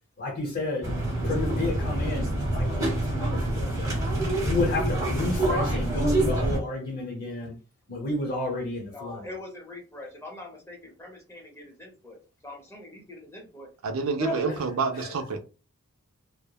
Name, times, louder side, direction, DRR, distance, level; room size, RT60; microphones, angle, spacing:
voice 1, 0.2-0.9 1.2-2.8 3.1-4.0 4.4-7.5 7.9-9.3 14.2-14.6 15.0-15.1, left 2 dB, 45° left, 0.7 m, -31 dB
sound 1, 0.8-6.6, right 1 dB, 15° right, 0.9 m, -26 dB
voice 2, 8.9-12.2 12.4-13.7 14.3-14.6, left 2 dB, 10° left, 0.7 m, -43 dB
voice 3, 13.8-15.4, right 4 dB, 65° right, 0.4 m, -28 dB
3.0 x 2.0 x 2.3 m
head